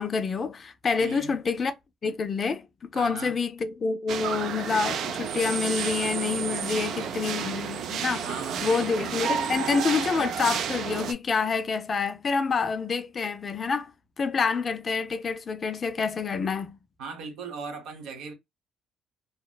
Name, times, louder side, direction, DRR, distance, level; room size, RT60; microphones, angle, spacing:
voice 1, 0.0-1.7 2.0-8.3 8.6-13.9 14.2-16.8, left 5 dB, 30° left, 0.3 m, -27 dB
voice 2, 1.0-1.3 2.9-3.4 6.6-7.2 8.2-8.9 17.0-18.3, right 5 dB, 75° right, 1.0 m, -38 dB
sound 1, 4.1-11.1, right 7 dB, 60° right, 0.3 m, -31 dB
2.8 x 2.0 x 2.2 m
cardioid pair, 145°, 0 cm